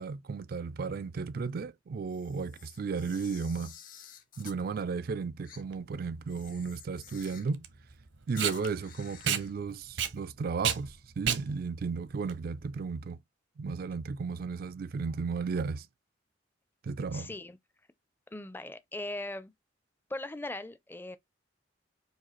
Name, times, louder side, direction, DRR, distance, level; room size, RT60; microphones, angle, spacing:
voice 1, 0.0-3.8 4.4-7.7 8.3-13.2 13.6-15.9 16.8-17.3, right 5 dB, 50° right, 0.3 m, -34 dB
Camera, 2.1-4.6 5.4-5.6 6.3-7.6 8.3-9.5, left 8 dB, 45° left, 0.9 m, -51 dB
Packing tape duct tape, 5.6-13.1, right 8 dB, 80° right, 0.8 m, -34 dB
voice 2, 17.1-17.6 18.3-19.5 20.1-21.2, left 2 dB, 10° left, 0.4 m, -39 dB
4.9 x 2.4 x 4.3 m
head